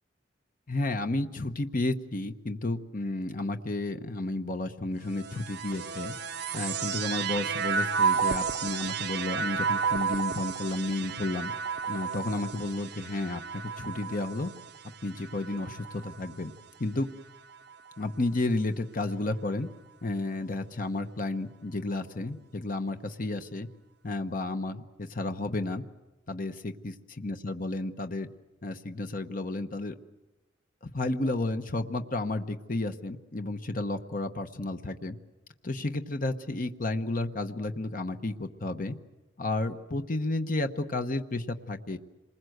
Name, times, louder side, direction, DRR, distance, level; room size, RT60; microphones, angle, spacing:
voice 1, 0.7-6.1 6.5-11.5 11.9-14.5 15.0-16.5 16.8-17.1 18.0-19.7 20.0-23.7 24.0-25.8 26.3-28.3 28.6-30.0 30.8-35.2 35.6-38.9 39.4-42.0, left 2 dB, 45° left, 7 dB, 1.0 m, -32 dB
sound 1, 5.1-16.6 17.3-18.1, right 6 dB, 60° right, 0.8 m, -32 dB
27.0 x 21.0 x 7.9 m, 1.1 s
head